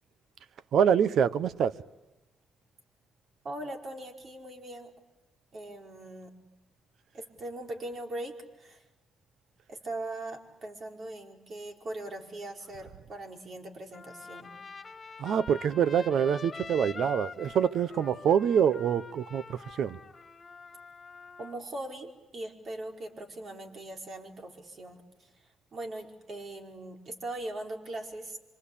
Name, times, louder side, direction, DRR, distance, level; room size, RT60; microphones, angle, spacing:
voice 1, 0.7-1.7 15.2-20.0, right 8 dB, 70° right, 0.9 m, -25 dB
voice 2, 3.4-4.9 5.5-6.3 7.1-8.8 9.7-14.5 21.4-25.3 25.7-28.4, right 1 dB, 50° right, 4.8 m, -40 dB
Trumpet, 13.9-21.6, left 4 dB, 30° left, 2.0 m, -45 dB
27.0 x 25.0 x 8.6 m
cardioid pair, 90°, 0 cm